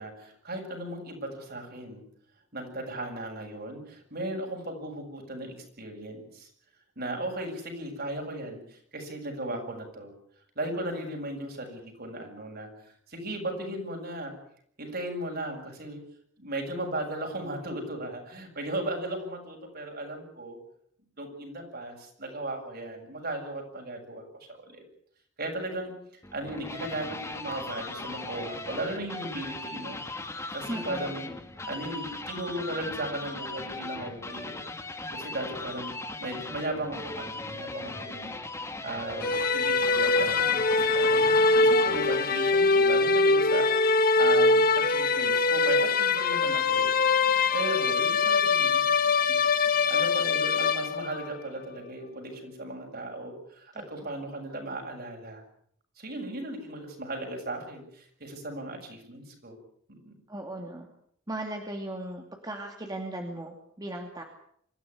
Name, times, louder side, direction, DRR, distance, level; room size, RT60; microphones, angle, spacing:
voice 1, 0.0-2.0 2.5-6.5 7.0-10.1 10.6-14.3 14.8-16.0 16.4-20.6 21.2-24.8 25.4-25.9 26.3-30.0 30.5-31.3 31.6-34.6 35.1-35.9 36.2-38.3 38.8-41.2 41.5-43.7 44.2-46.9 47.5-48.9 49.3-49.4 49.6-55.4 56.0-59.6 59.9-60.1, right 1 dB, 50° right, 2 dB, 7.5 m, -36 dB
sound 1, 26.2-42.7, left 2 dB, 15° left, 2.1 m, -38 dB
voice 2, 30.7-31.1 53.8-53.9 60.3-60.9 61.3-64.2, right 1 dB, 20° right, 2 dB, 2.6 m, -37 dB
sound 2, 39.2-51.3, left 3 dB, 50° left, 1.5 m, -23 dB
26.0 x 14.5 x 9.8 m, 0.69 s
head